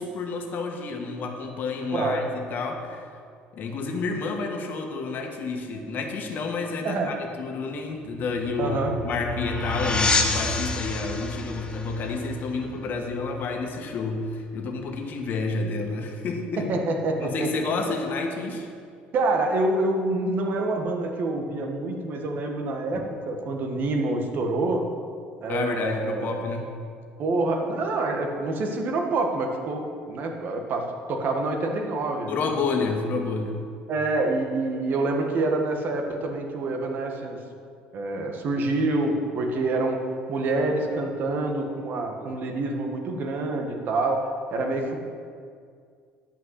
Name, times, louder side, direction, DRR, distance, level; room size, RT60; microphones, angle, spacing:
voice 1, 0.0-3.1 3.5-16.7 17.2-18.7 25.5-26.7 32.3-33.6, left 3 dB, 50° left, 3 dB, 1.6 m, -29 dB
voice 2, 1.9-2.3 6.8-7.1 8.6-8.9 16.6-17.9 19.1-24.9 25.4-26.4 27.2-32.5 33.9-37.4 37.9-40.0 40.3-45.0, right 2 dB, 55° right, 3 dB, 1.6 m, -27 dB
sound 1, 8.1-13.5, left 3 dB, 25° left, 1.0 m, -29 dB
10.5 x 5.8 x 8.3 m, 2.2 s
cardioid pair, 105°, 4 cm